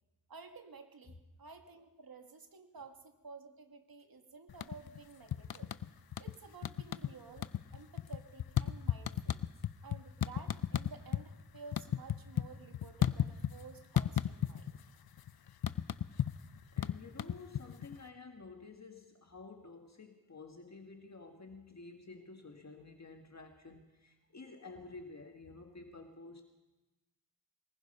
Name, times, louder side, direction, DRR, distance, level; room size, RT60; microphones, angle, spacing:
voice 1, 0.3-5.7 6.2-9.4 9.8-14.7, right 4 dB, 65° right, 5 dB, 2.0 m, -53 dB
sound 1, 4.5-5.0 5.3-6.3 6.6-7.1 7.4-11.2 11.5-13.6 14.0-14.8 15.1-18.0, left 10 dB, 75° left, 0.7 m, -34 dB
voice 2, 16.4-26.4, left 3 dB, 45° left, 4 dB, 1.7 m, -51 dB
23.5 x 20.5 x 5.5 m, 1.1 s
wide cardioid pair, 100°, 38 cm